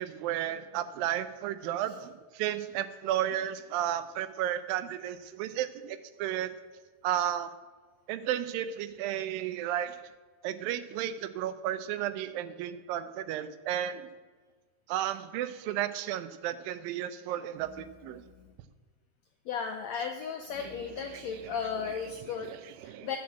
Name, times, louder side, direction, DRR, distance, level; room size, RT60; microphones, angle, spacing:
voice 1, 0.0-2.1 2.4-6.5 7.0-7.5 8.1-9.9 10.4-14.1 14.9-18.2 22.5-23.1, right 11 dB, 85° right, 12 dB, 2.4 m, -33 dB
voice 2, 19.5-22.5 22.8-23.2, left 6 dB, 85° left, 4 dB, 1.5 m, -36 dB
11.5 x 6.1 x 7.4 m, 1.5 s
omnidirectional pair, 4.1 m